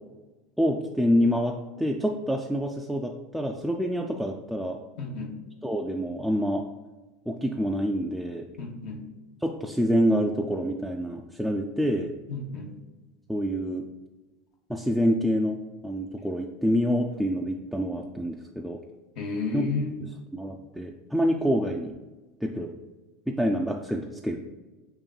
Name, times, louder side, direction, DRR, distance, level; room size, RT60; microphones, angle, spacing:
voice 1, 0.6-4.8 5.6-6.6 7.3-8.5 9.4-12.1 13.3-13.8 14.7-18.8 19.5-19.7 20.0-21.9 22.4-22.7 23.3-24.4, equal, ahead, -1 dB, 0.3 m, -27 dB
voice 2, 5.0-5.3 8.6-9.0 12.3-12.7 19.2-20.0, left 4 dB, 55° left, 2 dB, 0.7 m, -32 dB
5.7 x 2.6 x 2.3 m, 1.2 s
hypercardioid pair, 90°, 0 cm